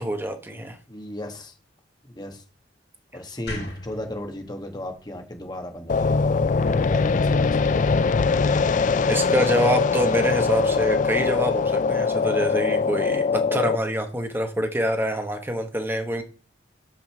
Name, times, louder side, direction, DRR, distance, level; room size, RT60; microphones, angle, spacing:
voice 1, 0.0-0.8 9.1-16.2, equal, 10° right, 6 dB, 1.1 m, -26 dB
voice 2, 0.9-1.5 2.0-2.4 3.1-6.3 6.7-8.0, left 1 dB, 25° left, 4 dB, 1.3 m, -35 dB
sound 1, 3.5-6.6, left 1 dB, 65° left, 2.7 m, -40 dB
sound 2, 5.9-13.8, left 4 dB, 45° left, 0.4 m, -22 dB
5.9 x 5.3 x 6.6 m, 0.38 s
head